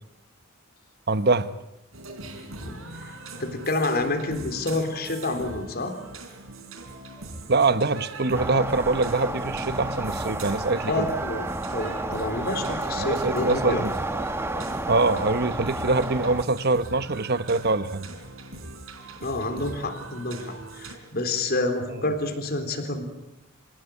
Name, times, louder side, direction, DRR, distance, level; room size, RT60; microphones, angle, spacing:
voice 1, 1.1-1.5 7.5-11.1 13.0-13.9 14.9-18.1, right 3 dB, 55° right, 1.1 m, -24 dB
sound 1, 1.9-21.0, right 2 dB, 85° right, 3.9 m, -41 dB
voice 2, 2.6-5.9 10.9-13.8 19.2-23.0, left 2 dB, 50° left, 3.7 m, -28 dB
sound 2, 7.2-7.3 7.5-7.7 7.9-8.0 8.4-9.4 14.1-15.1, left 1 dB, 35° right, 5.1 m, -43 dB
sound 3, 8.3-16.4, right 2 dB, 10° right, 1.1 m, -31 dB
28.0 x 17.0 x 9.3 m
head